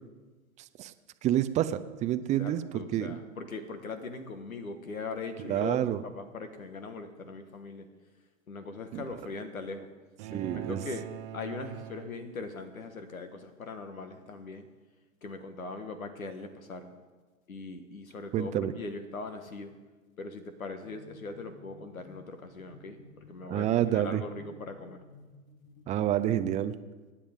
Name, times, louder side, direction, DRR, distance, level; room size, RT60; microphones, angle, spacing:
voice 1, 1.2-3.2 5.4-6.0 8.9-9.0 10.3-10.8 18.3-18.7 23.5-24.2 25.9-26.7, right 12 dB, 20° right, 11 dB, 0.5 m, -28 dB
voice 2, 2.4-5.8 6.0-7.9 8.5-9.9 10.3-11.0 11.3-14.7 15.2-16.9 17.5-19.7 20.2-23.7 23.9-25.0, left 3 dB, 90° left, 8 dB, 1.6 m, -40 dB
sound 1, 10.2-12.7, right 12 dB, 45° right, 0.9 m, -43 dB
sound 2, 20.8-26.5, left 3 dB, 65° left, 2.5 m, -54 dB
24.5 x 10.0 x 3.6 m, 1.3 s
hypercardioid pair, 110°, 41 cm